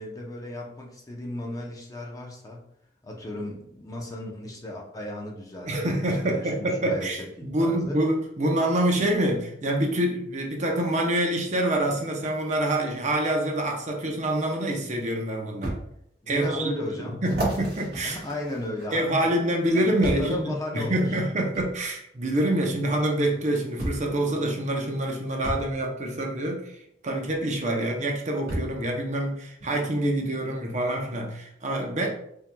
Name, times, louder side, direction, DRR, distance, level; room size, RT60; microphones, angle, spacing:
voice 1, 0.0-2.7 3.0-7.1 7.4-8.0 16.2-17.2 18.0-19.4 19.7-21.2, left 1 dB, 20° left, -1 dB, 0.7 m, -35 dB
voice 2, 5.7-15.8 16.3-16.6 17.0-18.2 18.9-20.4 20.7-26.8 27.0-32.1, right 1 dB, 45° right, 1 dB, 0.7 m, -26 dB
sound 1, 15.6-15.8 16.4-16.5 17.2-19.1 20.0-20.4 21.5-21.7 23.0-23.1 23.8-24.1 25.4-25.7 27.3-27.4 28.5-28.8 29.6-29.7, right 1 dB, 65° right, 1.3 m, -32 dB
4.3 x 3.6 x 2.2 m, 0.72 s
head